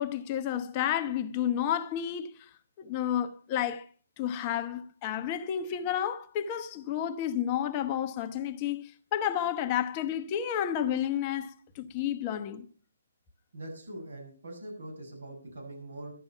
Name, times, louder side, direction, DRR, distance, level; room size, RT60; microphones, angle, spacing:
voice 1, 0.0-2.5 2.8-3.9 4.2-12.7, left 10 dB, 25° left, 0.9 m, -31 dB
voice 2, 13.5-16.1, right 1 dB, 75° right, 7.9 m, -42 dB
13.0 x 10.5 x 5.7 m
hypercardioid pair, 150°, 0 cm